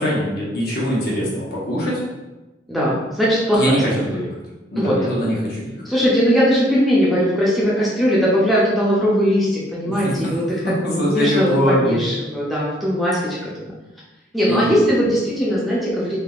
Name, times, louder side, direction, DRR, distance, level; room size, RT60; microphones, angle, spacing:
voice 1, 0.0-2.0 3.5-4.3 4.7-5.8 9.8-10.1 10.8-12.1 14.4-14.9, equal, 60° left, -6 dB, 1.0 m, -22 dB
voice 2, 2.7-4.1 4.8-5.4 5.8-13.4 14.3-16.2, equal, ahead, -7 dB, 0.5 m, -19 dB
3.4 x 2.8 x 2.4 m, 1.1 s
head